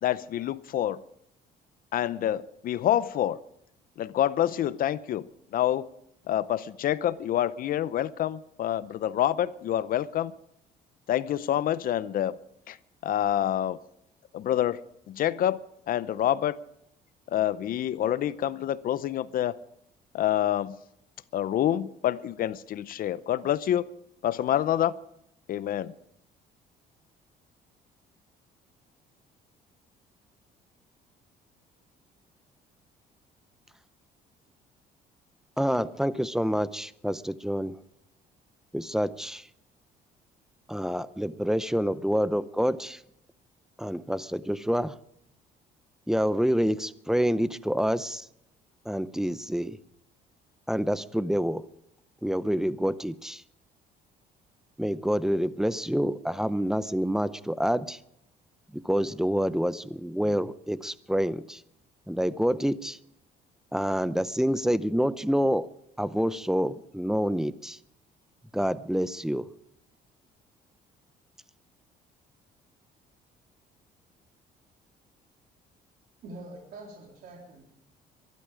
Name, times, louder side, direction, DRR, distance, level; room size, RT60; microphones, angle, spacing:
voice 1, 0.0-1.0 1.9-3.4 4.0-5.3 5.5-5.9 6.3-10.3 11.1-12.3 12.7-12.8 13.0-13.8 14.3-14.8 15.1-15.6 15.9-16.6 17.3-19.6 20.1-20.8 21.3-23.9 24.2-25.0 25.5-25.9, left 11 dB, 55° left, 0.7 m, -27 dB
voice 2, 35.6-37.8 38.7-39.5 40.7-43.0 43.8-45.0 46.1-48.3 48.9-49.8 50.7-51.7 52.2-53.4 54.8-58.0 58.7-61.6 62.1-63.0 63.7-65.7 66.0-67.8 68.5-69.5, equal, 5° right, 0.6 m, -27 dB
voice 3, 76.2-77.6, right 2 dB, 65° right, 3.9 m, -44 dB
23.0 x 12.0 x 5.0 m
cardioid pair, 110°, 17 cm